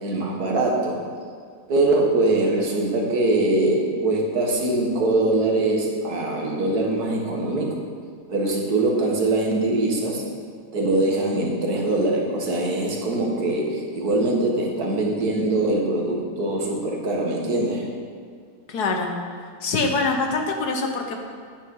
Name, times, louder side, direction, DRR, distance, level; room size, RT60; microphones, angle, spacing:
voice 1, 0.0-1.0 1.7-7.8 8.3-10.2 10.7-17.9, right 2 dB, 80° right, 0 dB, 2.2 m, -22 dB
voice 2, 18.7-19.1 19.6-21.2, left 3 dB, 90° left, 4 dB, 1.7 m, -24 dB
9.8 x 9.5 x 5.4 m, 2.1 s
omnidirectional pair, 1.6 m